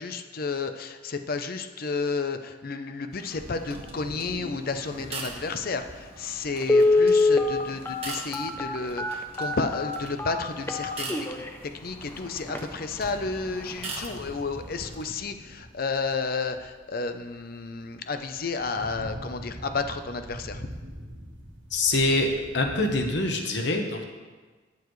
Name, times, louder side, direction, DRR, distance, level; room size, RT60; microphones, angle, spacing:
voice 1, 0.0-20.7, left 4 dB, 50° left, 8 dB, 0.6 m, -32 dB
sound 1, 3.1-15.0, right 3 dB, 30° right, 1.5 m, -43 dB
sound 2, 3.3-10.9 11.2-23.2, equal, 90° right, 1.6 m, -45 dB
Telephone, 5.9-6.0 6.6-11.5 12.0-12.1 12.5-12.7 13.0-13.3 13.6-13.7, left 3 dB, 10° left, 0.6 m, -23 dB
voice 2, 21.7-22.3 22.5-24.0, left 2 dB, 65° left, 3 dB, 1.1 m, -24 dB
17.5 x 7.1 x 3.2 m, 1.3 s
head